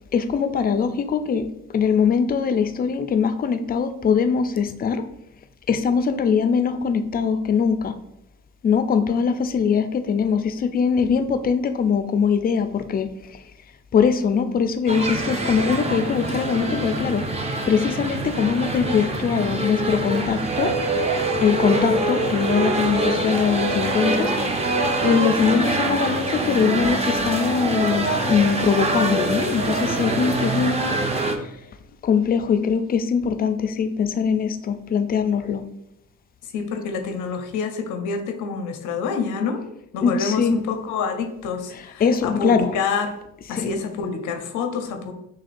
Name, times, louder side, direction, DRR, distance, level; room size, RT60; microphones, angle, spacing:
voice 1, 0.1-5.0 5.7-8.0 8.6-13.1 13.9-17.3 17.7-20.7 21.4-31.0 32.0-35.6 40.0-40.6 41.7-42.7 43.5-43.7, left 6 dB, 30° left, 9 dB, 0.3 m, -22 dB
sound 1, 14.9-31.4, right 2 dB, 20° right, 0.5 m, -24 dB
voice 2, 36.4-39.6 39.9-43.1 43.5-45.1, left 5 dB, 90° left, 6 dB, 0.6 m, -27 dB
6.3 x 2.3 x 2.5 m, 0.82 s
cardioid pair, 90°, 30 cm